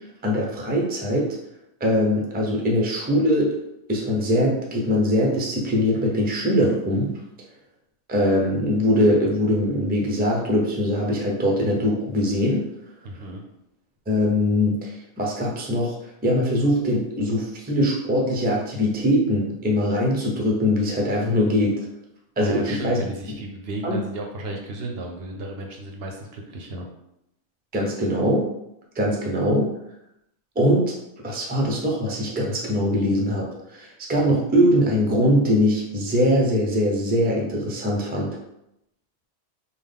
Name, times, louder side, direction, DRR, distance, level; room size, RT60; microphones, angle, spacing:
voice 1, 0.2-1.3 1.8-3.5 3.9-7.1 8.1-12.6 14.1-15.9 16.2-21.9 22.4-23.0 23.8-24.0 27.7-28.5 29.0-29.7 30.6-30.9 31.2-38.4, equal, 10° right, -2 dB, 0.4 m, -22 dB
voice 2, 13.0-13.4 22.4-26.8, right 1 dB, 65° right, 2 dB, 0.7 m, -34 dB
3.7 x 2.2 x 3.4 m, 0.82 s
omnidirectional pair, 1.2 m